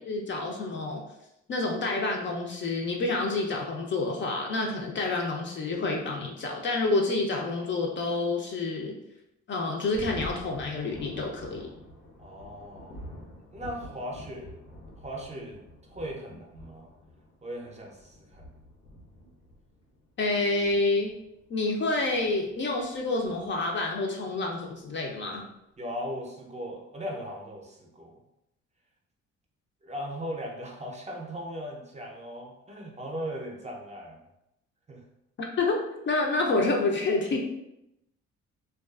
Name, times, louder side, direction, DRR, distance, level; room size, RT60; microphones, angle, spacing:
voice 1, 0.1-1.0 1.5-9.0 9.5-11.7 20.2-21.1 21.5-25.4 35.4-37.4, left 3 dB, 40° left, 0 dB, 0.4 m, -28 dB
Thunder, 9.9-23.9, left 1 dB, 85° left, 0.8 m, -47 dB
voice 2, 12.2-13.0 13.5-14.6 15.0-15.6 15.9-16.9 17.4-18.5 25.8-28.2 29.8-34.2 34.9-35.0, equal, 25° right, -1 dB, 0.5 m, -38 dB
2.3 x 2.3 x 2.3 m, 0.85 s
cardioid pair, 90°, 30 cm